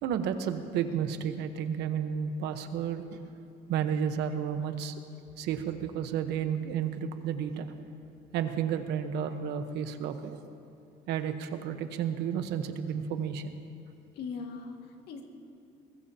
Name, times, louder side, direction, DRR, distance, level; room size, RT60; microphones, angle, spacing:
voice 1, 0.0-3.2 3.7-4.9 5.4-7.7 8.3-10.4 11.1-13.5, right 8 dB, 85° right, 8 dB, 1.1 m, -32 dB
voice 2, 14.1-15.2, left 5 dB, 75° left, 2 dB, 2.0 m, -40 dB
22.5 x 21.0 x 2.9 m, 2.5 s
cardioid pair, 110°, 17 cm